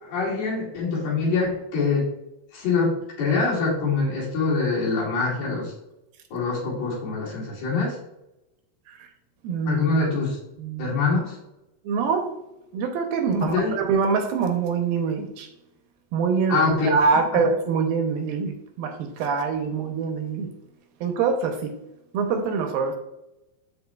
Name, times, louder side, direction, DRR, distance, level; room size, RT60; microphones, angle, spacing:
voice 1, 0.0-2.1 2.5-5.7 6.3-8.0 9.7-10.4 10.8-11.4 13.5-13.7 16.5-17.0, left 4 dB, 75° left, -7 dB, 4.5 m, -24 dB
voice 2, 9.4-9.8 10.6-10.9 11.9-12.3 12.7-15.5 16.1-20.5 21.0-21.7 22.1-23.0, right 5 dB, 75° right, 5 dB, 2.4 m, -24 dB
13.0 x 4.6 x 2.3 m, 0.90 s
omnidirectional pair, 4.4 m